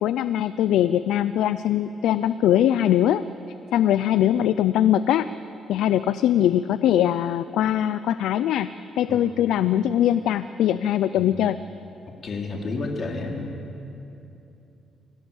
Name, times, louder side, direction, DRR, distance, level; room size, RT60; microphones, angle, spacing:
voice 1, 0.0-3.2 3.7-5.3 5.7-8.7 9.0-11.6, left 11 dB, 85° left, 14 dB, 0.4 m, -21 dB
voice 2, 11.2-11.5 12.2-13.5, left 3 dB, 50° left, 1 dB, 3.6 m, -31 dB
25.5 x 17.0 x 7.3 m, 2.8 s
cardioid pair, 90°, 0 cm